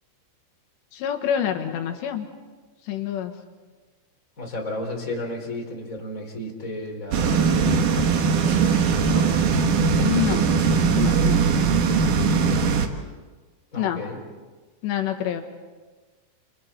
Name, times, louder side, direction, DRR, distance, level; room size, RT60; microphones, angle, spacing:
voice 1, 0.9-2.3 2.8-3.3 10.0-10.5 10.9-11.4 13.8-14.0 14.8-15.4, left 10 dB, 70° left, 4 dB, 3.2 m, -27 dB
voice 2, 4.4-7.5 9.0-9.3 13.7-14.2, left 1 dB, 20° left, 0 dB, 3.5 m, -33 dB
sound 1, 7.1-12.9, right 5 dB, 85° right, 1.8 m, -20 dB
29.5 x 28.0 x 4.4 m, 1.4 s
omnidirectional pair, 5.9 m